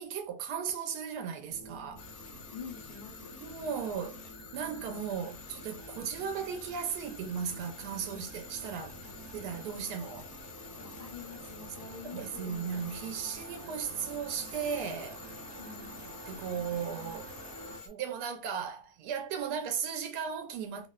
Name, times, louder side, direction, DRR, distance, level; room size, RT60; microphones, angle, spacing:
voice 1, 0.0-2.0 3.4-4.2 4.5-9.0 9.3-10.3 12.1-15.2 16.3-17.3 17.9-20.9, right 7 dB, 85° right, 1.1 m, -36 dB
sound 1, 1.5-17.8, right 2 dB, 60° right, 0.6 m, -49 dB
sound 2, 2.0-17.9, left 6 dB, 60° left, 0.8 m, -49 dB
voice 2, 2.5-3.4 9.0-9.1 10.8-12.8 15.6-16.1, left 6 dB, 80° left, 0.4 m, -47 dB
2.9 x 2.0 x 2.2 m
omnidirectional pair, 1.7 m